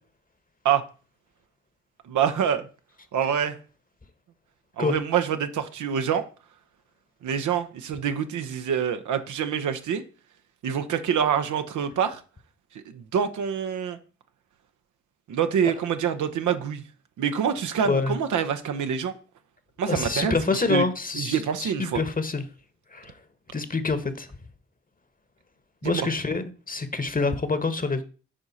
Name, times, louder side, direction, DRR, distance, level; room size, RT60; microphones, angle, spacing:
voice 1, 2.1-2.7 3.1-3.6 4.8-6.2 7.2-10.0 10.6-12.2 12.9-14.0 15.3-16.8 17.2-19.1 19.8-20.8 21.1-22.0 25.8-26.1, right 8 dB, 70° right, 0.9 m, -26 dB
voice 2, 17.8-18.1 19.9-22.4 22.9-23.1 23.5-24.3 25.8-28.0, left 3 dB, 25° left, 1.2 m, -26 dB
8.8 x 4.9 x 4.2 m
hypercardioid pair, 40°, 31 cm